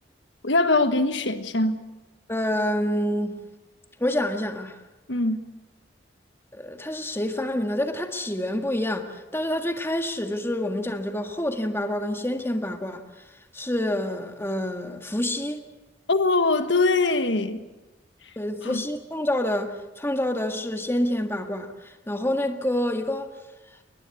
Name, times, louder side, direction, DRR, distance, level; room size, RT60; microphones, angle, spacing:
voice 1, 0.4-1.8 5.1-5.4 16.1-17.6 18.6-18.8, left 3 dB, 70° left, 1.5 m, -22 dB
voice 2, 2.3-3.4 4.0-4.8 6.5-13.0 13.5-15.7 18.4-23.3, left 1 dB, 15° left, 1.8 m, -27 dB
22.0 x 21.0 x 8.4 m
head